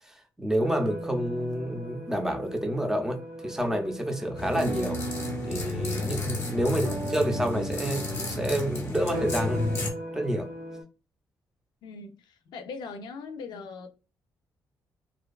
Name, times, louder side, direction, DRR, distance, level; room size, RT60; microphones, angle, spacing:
voice 1, 0.4-5.0 5.5-10.5, right 1 dB, 5° right, 0.4 m, -29 dB
sound 1, 0.6-10.8, right 2 dB, 70° right, 0.7 m, -37 dB
sound 2, 4.4-9.9, left 2 dB, 35° left, 0.6 m, -32 dB
voice 2, 11.8-13.9, left 4 dB, 80° left, 0.4 m, -40 dB
2.5 x 2.2 x 2.3 m
wide cardioid pair, 160°, 7 cm